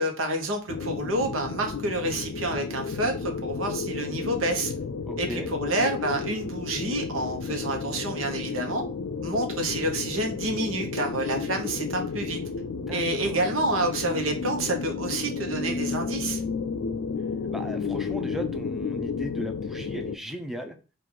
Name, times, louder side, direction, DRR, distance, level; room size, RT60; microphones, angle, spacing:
voice 1, 0.0-4.7 5.2-8.8 9.2-12.4 12.9-16.4, right 1 dB, 90° right, 0.9 m, -28 dB
sound 1, 0.7-20.2, left 5 dB, 60° left, 0.4 m, -32 dB
voice 2, 5.1-5.5 12.9-13.5 17.5-20.8, equal, ahead, 0.5 m, -37 dB
4.8 x 2.5 x 3.7 m
head